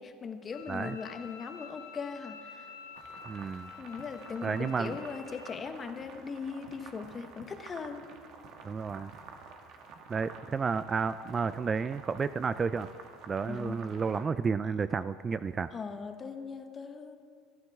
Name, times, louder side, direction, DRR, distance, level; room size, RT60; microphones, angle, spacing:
voice 1, 0.0-2.7 3.8-8.1 13.4-13.8 15.7-17.2, left 5 dB, 30° left, 7 dB, 1.2 m, -39 dB
Bowed string instrument, 0.5-5.5, left 5 dB, 75° left, 1.6 m, -48 dB
sound 1, 2.9-14.2, right 4 dB, 55° right, 1.6 m, -50 dB
voice 2, 3.3-3.7 4.4-5.0 8.6-9.1 10.1-12.9 13.3-15.7, right 5 dB, 25° right, 14 dB, 0.3 m, -31 dB
28.0 x 9.7 x 3.6 m, 2.1 s
supercardioid pair, 110°, 0 cm